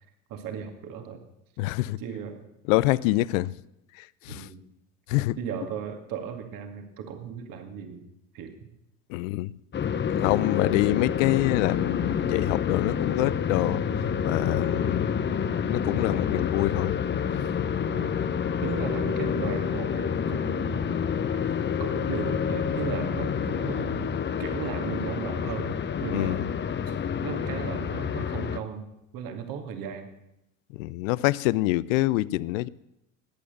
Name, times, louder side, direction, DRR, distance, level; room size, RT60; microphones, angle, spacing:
voice 1, 0.3-1.2 2.0-2.4 4.3-4.7 5.4-8.1 8.3-8.7 14.7-15.1 17.9-18.1 18.6-21.0 21.3-21.4 21.8-24.1 24.4-26.5 26.9-27.0 27.2-28.9 29.1-30.1, right 7 dB, 50° right, 2.3 m, -36 dB
voice 2, 1.6-2.0 2.7-3.5 4.3-4.5 5.1-5.4 9.1-9.5 10.2-13.8 14.2-15.0 15.7-17.0 26.1-26.4 30.8-32.7, left 18 dB, 60° left, 0.6 m, -25 dB
sound 1, 9.7-28.6, left 7 dB, 25° left, 0.9 m, -28 dB
Piano, 16.1-21.3, left 14 dB, 40° left, 2.5 m, -43 dB
20.0 x 8.6 x 6.7 m
hypercardioid pair, 80°, 44 cm